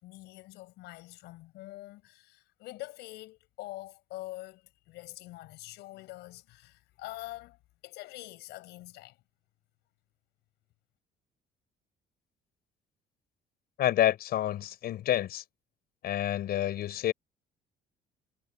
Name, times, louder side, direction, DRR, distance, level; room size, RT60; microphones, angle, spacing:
voice 1, 0.0-7.6 7.8-9.2, left 18 dB, 90° left, 6.8 m, -45 dB
voice 2, 13.8-15.4 16.0-17.1, left 12 dB, 65° left, 6.0 m, -28 dB
cardioid pair, 110°, 17 cm